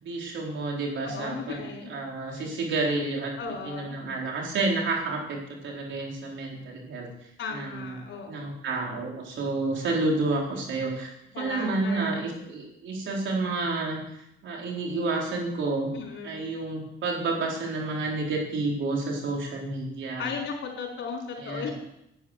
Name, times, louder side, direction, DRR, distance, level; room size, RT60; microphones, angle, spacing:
voice 1, 0.0-3.3 3.6-7.1 7.5-8.0 8.3-11.1 11.4-14.0 14.4-15.9 16.2-20.3 21.4-21.7, right 3 dB, 70° right, 0 dB, 4.3 m, -30 dB
voice 2, 1.0-1.9 2.3-2.6 3.4-4.0 7.4-8.5 11.3-12.2 15.9-16.5 20.2-21.7, left 5 dB, 70° left, 0 dB, 4.4 m, -36 dB
11.0 x 9.6 x 8.0 m, 0.81 s
cardioid pair, 90°, 20 cm